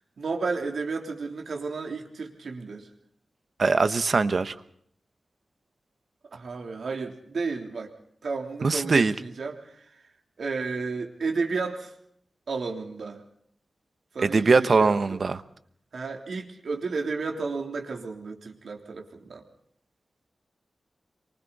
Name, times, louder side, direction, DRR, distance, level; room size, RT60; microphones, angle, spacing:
voice 1, 0.2-2.9 6.3-7.9 8.2-9.9 10.4-11.9 12.5-13.2 14.1-15.2 15.9-19.4, right 4 dB, 75° right, 2 dB, 3.4 m, -32 dB
voice 2, 3.6-4.5 8.6-9.1 14.2-15.4, right 4 dB, 55° right, 12 dB, 1.1 m, -21 dB
27.5 x 24.5 x 4.2 m, 0.67 s
wide cardioid pair, 110°, 0 cm